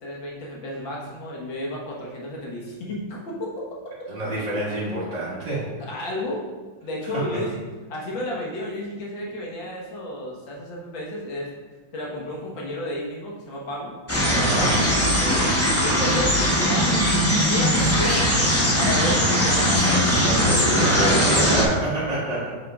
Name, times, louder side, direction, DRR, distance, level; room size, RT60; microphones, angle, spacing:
voice 1, 0.0-3.8 5.8-6.5 6.8-7.6 7.9-11.5 11.9-13.9 15.2-15.5 15.8-17.1 17.5-20.2 20.8-21.6, left 1 dB, 70° left, -3 dB, 2.2 m, -31 dB
voice 2, 4.1-5.7 14.3-14.8 20.2-22.5, right 1 dB, 65° right, -8 dB, 2.5 m, -27 dB
sound 1, 14.1-21.6, equal, 20° left, 0.3 m, -20 dB
8.1 x 6.7 x 2.5 m, 1.3 s
omnidirectional pair, 2.2 m